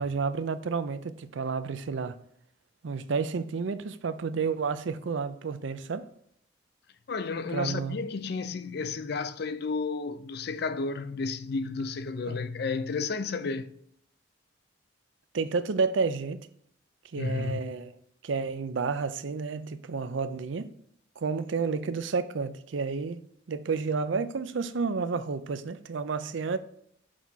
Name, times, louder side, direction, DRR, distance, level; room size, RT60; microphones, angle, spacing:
voice 1, 0.0-2.1 2.8-6.1 7.5-8.0 12.3-12.4 15.3-16.5 17.1-17.9 18.2-20.7 21.2-26.6, right 5 dB, 75° right, 0.5 m, -30 dB
voice 2, 7.1-13.7 17.2-17.7, left 4 dB, 55° left, 0.4 m, -32 dB
6.3 x 4.1 x 4.6 m
head